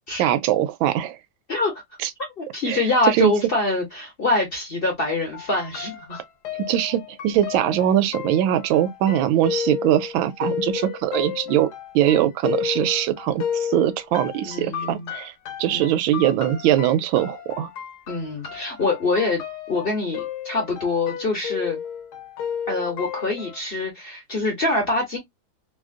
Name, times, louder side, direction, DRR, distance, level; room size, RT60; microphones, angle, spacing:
voice 1, 0.2-1.2 2.0-2.1 2.7-3.3 6.7-11.7 11.9-15.3 15.6-17.7, right 12 dB, 85° right, 1.3 m, -22 dB
voice 2, 1.5-1.8 2.4-6.2 14.4-15.1 15.7-15.8 16.1-16.3 18.1-19.4 19.7-21.8 22.7-25.2, left 2 dB, 40° left, 1.0 m, -25 dB
sound 1, 5.3-23.6, left 8 dB, 65° left, 1.1 m, -32 dB
3.2 x 2.4 x 2.4 m
omnidirectional pair, 2.1 m